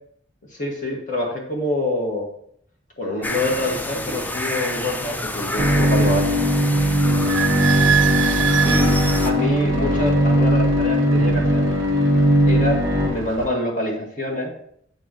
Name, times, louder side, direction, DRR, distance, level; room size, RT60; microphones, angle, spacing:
voice 1, 0.5-2.3 3.0-6.4 7.0-7.3 8.6-9.0 9.2-11.7 12.5-14.5, left 1 dB, 40° left, -1 dB, 1.8 m, -26 dB
sound 1, 3.2-9.3, left 1 dB, 10° left, 0.3 m, -29 dB
Bowed string instrument, 5.6-13.1, equal, 20° right, 2.0 m, -19 dB
Idling / Squeak, 7.1-13.5, right 8 dB, 75° right, 0.4 m, -27 dB
7.6 x 7.3 x 3.0 m, 0.66 s
head